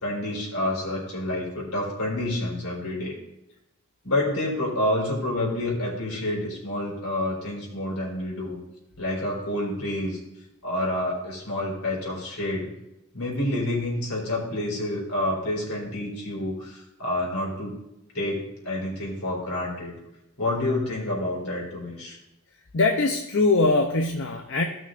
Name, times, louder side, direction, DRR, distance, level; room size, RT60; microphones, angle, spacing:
voice 1, 0.0-3.2 4.0-8.6 9.0-10.2 10.6-12.7 13.1-17.8 18.1-19.9 20.4-22.2, left 1 dB, 75° left, -3 dB, 3.3 m, -28 dB
voice 2, 22.7-24.6, left 3 dB, 55° left, 3 dB, 0.6 m, -22 dB
15.5 x 6.0 x 2.5 m, 0.86 s
head